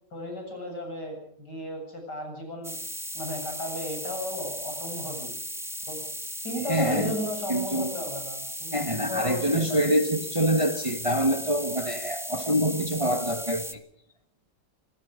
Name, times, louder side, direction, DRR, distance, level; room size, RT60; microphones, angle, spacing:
voice 1, 0.1-2.8 3.1-5.3 5.9-6.0 6.4-9.9, left 1 dB, 75° left, 8.5 m, -34 dB
sound 1, 2.6-13.7, equal, ahead, 1.1 m, -36 dB
voice 2, 6.7-7.1 7.5-7.9 8.7-13.7, right 1 dB, 20° right, 1.5 m, -25 dB
27.0 x 19.0 x 5.1 m
omnidirectional pair, 1.8 m